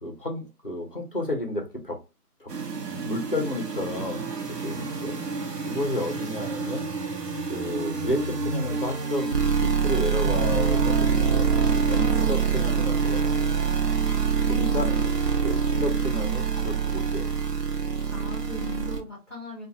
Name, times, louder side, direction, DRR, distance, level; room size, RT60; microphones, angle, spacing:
voice 1, 0.0-2.0 2.4-2.5 2.9-5.2 5.6-6.9 7.5-11.5 11.9-13.5 14.5-14.9 15.4-17.4, left 1 dB, 35° left, 0.5 m, -32 dB
sound 1, 2.5-19.0, right 6 dB, 85° right, 0.8 m, -26 dB
sound 2, 10.2-16.2, equal, 15° right, 1.2 m, -37 dB
voice 2, 14.3-15.1 18.1-19.7, left 4 dB, 15° left, 1.0 m, -38 dB
2.4 x 2.2 x 2.8 m
figure-of-eight pair, 165°, 47 cm